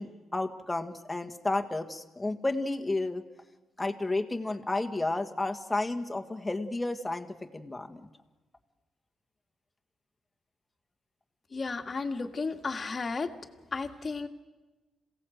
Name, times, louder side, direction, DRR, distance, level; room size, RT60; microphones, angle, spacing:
voice 1, 0.0-3.2 3.8-8.1, left 2 dB, 15° left, 5 dB, 1.8 m, -32 dB
voice 2, 11.5-13.3 13.7-14.3, left 4 dB, 40° left, 5 dB, 1.8 m, -33 dB
27.0 x 17.0 x 8.0 m, 1.2 s
cardioid pair, 85°, 0 cm